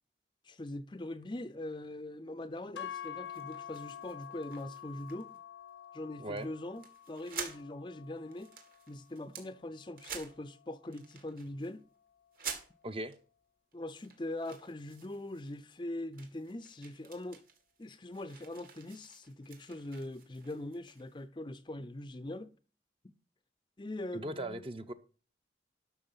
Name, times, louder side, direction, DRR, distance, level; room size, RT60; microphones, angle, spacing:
voice 1, 0.4-5.3 5.9-8.5 8.9-11.9 13.7-17.4 17.8-22.5 23.0-23.1 23.8-24.6, left 1 dB, 25° left, 0.5 m, -42 dB
sound 1, 2.8-11.0, left 10 dB, 85° left, 0.5 m, -48 dB
sound 2, 2.9-5.4 5.7-5.9 6.4-6.5 6.7-7.6 8.0-9.5 10.0-10.6 10.9-11.7 12.3-13.2 13.7-15.8 16.1-21.2, right 7 dB, 55° right, 2.2 m, -49 dB
voice 2, 6.2-6.5 12.8-13.1 24.1-24.9, right 1 dB, 30° right, 0.8 m, -38 dB
12.0 x 6.2 x 5.6 m
head